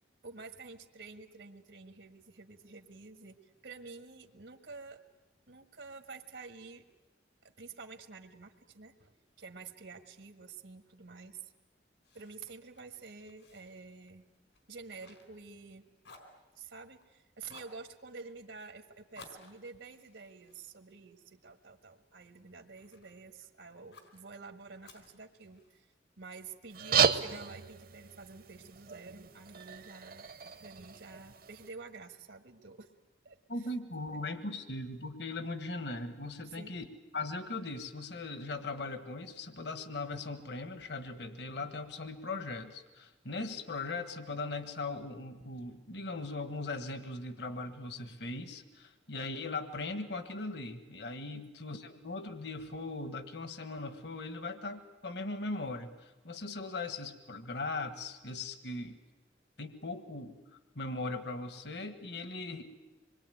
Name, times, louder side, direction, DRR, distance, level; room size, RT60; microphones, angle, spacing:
voice 1, 0.2-3.4 3.6-5.0 5.5-6.8 7.4-11.5 12.1-14.2 14.7-15.8 16.5-25.9 26.2-30.3 30.6-32.9 33.2-33.7 34.1-34.3 36.4-36.7 51.3-51.4, right 4 dB, 80° right, 5 dB, 1.6 m, -49 dB
Fire, 12.0-15.7 16.0-17.1 17.5-17.8 19.1-21.6 22.1-23.2 23.9-24.2 24.8-25.9, left 3 dB, 80° left, 4.4 m, -58 dB
sound 1, 26.7-31.7, right 6 dB, 50° right, 0.9 m, -33 dB
voice 2, 33.5-36.9 37.1-59.0 59.6-60.4 60.7-62.6, left 3 dB, 65° left, 9 dB, 1.5 m, -39 dB
26.0 x 22.0 x 9.2 m, 1.1 s
head